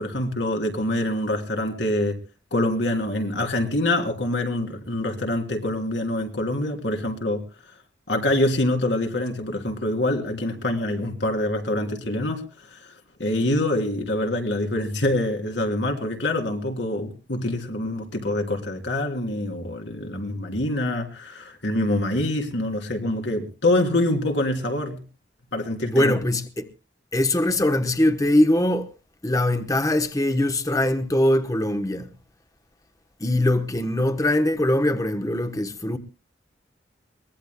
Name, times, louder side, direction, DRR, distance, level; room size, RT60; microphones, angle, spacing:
voice 1, 0.0-2.2 2.5-7.4 8.1-12.4 12.7-12.9 13.2-25.0 25.5-26.2, left 1 dB, 80° left, 3.1 m, -25 dB
voice 2, 25.9-26.7 27.1-28.9 29.2-32.1 33.2-36.0, left 1 dB, 20° left, 1.0 m, -22 dB
22.5 x 19.0 x 2.2 m
head